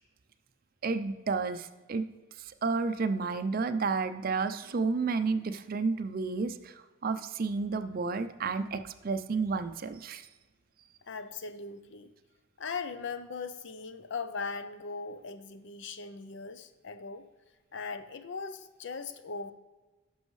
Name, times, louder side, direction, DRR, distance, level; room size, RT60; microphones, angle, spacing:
voice 1, 0.8-2.0 2.4-10.3, right 4 dB, 45° right, 10 dB, 0.4 m, -31 dB
voice 2, 11.1-12.1 12.6-17.3 17.7-19.5, left 4 dB, 65° left, 10 dB, 0.6 m, -39 dB
10.5 x 6.2 x 3.1 m, 1.2 s
head